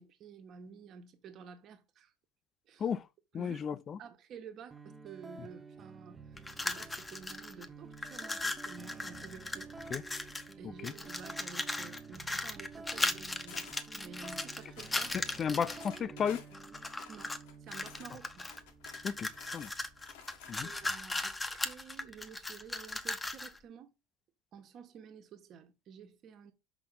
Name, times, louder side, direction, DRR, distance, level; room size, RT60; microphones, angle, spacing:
voice 1, 0.0-2.1 2.7-2.9 3.4-3.6 4.0-9.7 10.6-13.7 13.9-15.2 17.1-18.5 20.6-23.9 24.5-26.5, right 6 dB, 50° right, 1.6 m, -51 dB
voice 2, 3.3-4.0 9.9-10.0 10.8-10.9 15.4-16.4 19.0-19.7 20.5-20.7, left 7 dB, 35° left, 0.6 m, -34 dB
sound 1, 4.7-22.7, right 4 dB, 15° right, 0.8 m, -52 dB
sound 2, 6.4-7.7 7.9-10.5 10.8-16.0 16.5-17.4 17.7-23.6, left 2 dB, 10° left, 0.9 m, -38 dB
sound 3, 13.5-13.9 14.2-15.2 15.5-18.1 18.4-20.9, left 8 dB, 85° left, 1.7 m, -53 dB
6.1 x 5.0 x 5.8 m
supercardioid pair, 120°, 0 cm